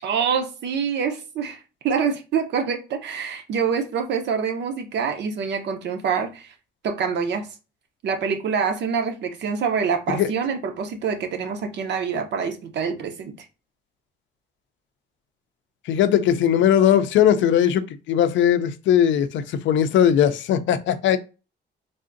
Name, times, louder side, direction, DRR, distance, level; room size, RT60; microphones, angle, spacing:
voice 1, 0.0-6.5 6.8-7.5 8.0-13.3, right 6 dB, 65° right, 0.7 m, -26 dB
voice 2, 15.9-21.2, left 9 dB, 80° left, 0.4 m, -19 dB
3.5 x 2.5 x 2.5 m
cardioid pair, 165°, 19 cm